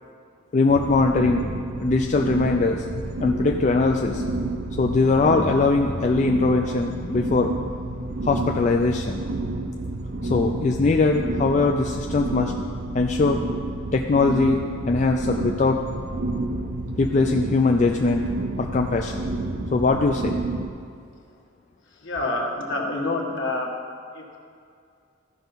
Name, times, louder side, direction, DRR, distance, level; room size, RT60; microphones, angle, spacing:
voice 1, 0.5-1.4 1.8-2.8 3.2-4.2 4.8-7.5 8.2-9.2 10.2-12.5 12.9-13.4 13.9-15.8 17.0-18.2 18.6-19.1 19.7-20.4, left 3 dB, 35° left, 2 dB, 0.3 m, -21 dB
sound 1, 0.7-20.7, right 2 dB, 50° right, 0.5 m, -30 dB
voice 2, 21.9-23.8 24.1-24.4, left 2 dB, 65° left, 0 dB, 1.3 m, -27 dB
13.5 x 5.6 x 3.9 m, 2.3 s
head